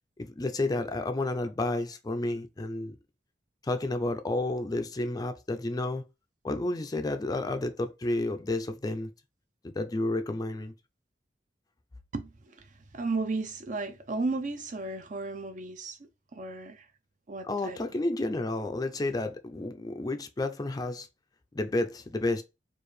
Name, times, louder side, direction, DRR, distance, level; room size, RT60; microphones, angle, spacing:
voice 1, 0.2-3.0 3.6-6.0 6.4-9.1 9.6-10.7 17.5-21.1 21.5-22.4, left 2 dB, 20° left, 0.4 m, -31 dB
voice 2, 12.1-12.7 12.9-16.9 17.3-17.8, right 3 dB, 45° right, 0.6 m, -34 dB
4.5 x 2.5 x 3.1 m
head